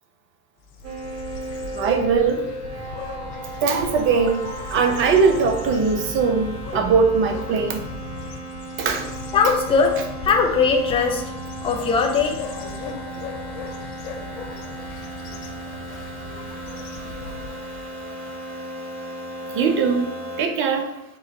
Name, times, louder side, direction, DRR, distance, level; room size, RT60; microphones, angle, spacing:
sound 1, 0.6-17.9, left 4 dB, 60° left, 0.7 m, -37 dB
sound 2, 0.8-20.5, right 1 dB, 55° right, 1.1 m, -36 dB
voice 1, 1.7-2.5 3.6-7.8 8.8-9.1 14.5-21.0, right 5 dB, 30° right, 5 dB, 0.6 m, -23 dB
voice 2, 9.3-11.2 11.6-12.4 16.7-16.8 17.2-17.3 17.9-18.0, left 5 dB, 15° left, 3 dB, 0.3 m, -20 dB
3.8 x 2.5 x 4.3 m, 0.86 s
hypercardioid pair, 90°, 42 cm